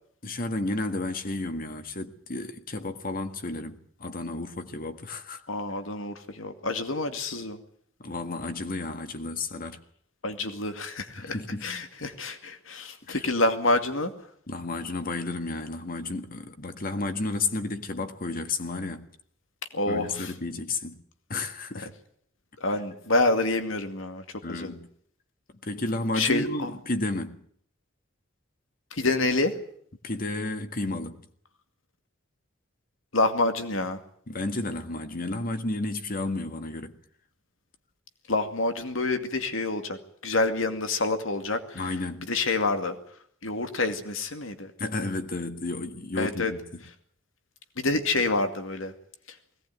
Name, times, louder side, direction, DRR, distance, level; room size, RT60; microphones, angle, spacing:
voice 1, 0.2-5.4 8.0-9.8 11.2-11.7 13.0-13.3 14.5-19.1 19.9-21.0 21.3-21.9 24.4-24.9 25.6-27.4 30.0-31.2 34.3-37.0 41.7-42.3 44.8-46.8, left 2 dB, 45° left, 1.8 m, -32 dB
voice 2, 5.5-7.6 10.2-11.4 11.6-14.1 19.7-20.3 22.6-24.2 24.5-24.7 26.2-26.7 28.9-29.5 33.1-34.0 38.3-40.0 40.2-41.8 42.3-43.0 43.4-44.7 46.2-46.5 47.8-48.9, left 2 dB, 80° left, 2.3 m, -27 dB
21.0 x 18.0 x 9.3 m
head